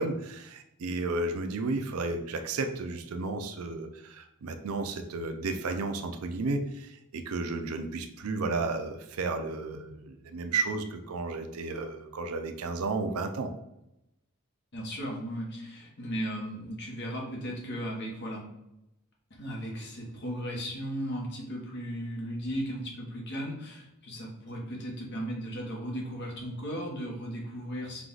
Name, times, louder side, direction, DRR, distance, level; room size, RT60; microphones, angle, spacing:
voice 1, 0.0-13.5, right 3 dB, 80° right, 6 dB, 0.5 m, -33 dB
voice 2, 14.7-18.4 19.3-28.0, equal, 50° left, -1 dB, 1.1 m, -36 dB
4.6 x 2.4 x 3.8 m, 0.86 s
head